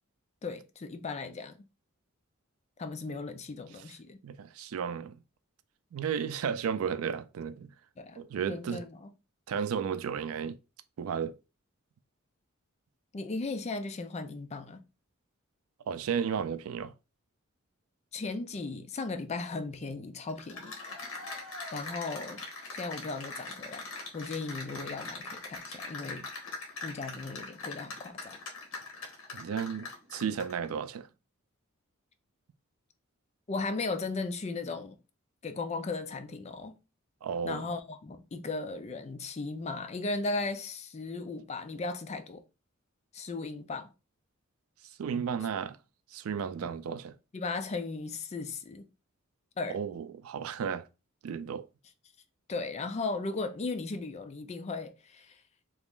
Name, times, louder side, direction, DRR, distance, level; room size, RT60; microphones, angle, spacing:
voice 1, 0.4-1.6 2.8-4.2 8.0-9.1 13.1-14.8 18.1-20.8 21.7-22.4 22.7-23.9 24.1-26.3 26.8-28.4 33.5-35.0 35.4-36.8 37.4-42.4 43.1-43.9 46.6-46.7 47.3-48.9 49.6-49.8 52.5-55.4, left 3 dB, 30° left, 0.4 m, -36 dB
voice 2, 4.2-5.2 5.9-7.7 8.2-8.8 9.5-10.6 11.0-11.3 15.9-16.9 29.3-31.1 37.2-37.7 45.0-45.8 46.1-47.1 49.7-50.8 51.2-51.7, right 7 dB, 85° right, 0.4 m, -33 dB
Cheering / Applause, 20.3-30.7, left 3 dB, 70° left, 1.1 m, -42 dB
3.0 x 2.4 x 3.6 m
head